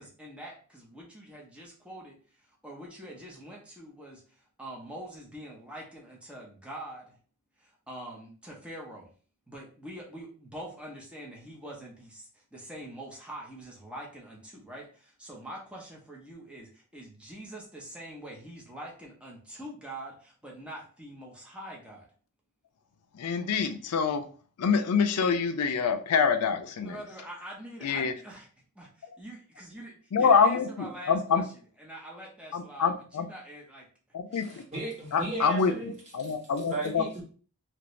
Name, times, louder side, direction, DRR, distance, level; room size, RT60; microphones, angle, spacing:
voice 1, 0.0-7.2 7.6-9.1 9.5-22.1 26.8-28.5 28.8-31.5 31.8-33.9, right 1 dB, 5° right, -3 dB, 0.7 m, -44 dB
voice 2, 23.1-24.2 24.6-27.0 27.8-28.1 30.1-31.4 32.5-33.3 34.1-34.6 35.1-35.7 36.1-37.0, left 6 dB, 85° left, 7 dB, 0.4 m, -26 dB
voice 3, 34.3-35.9 36.2-36.3 36.7-37.2, right 2 dB, 30° right, -5 dB, 1.4 m, -36 dB
2.9 x 2.6 x 3.1 m, 0.41 s
head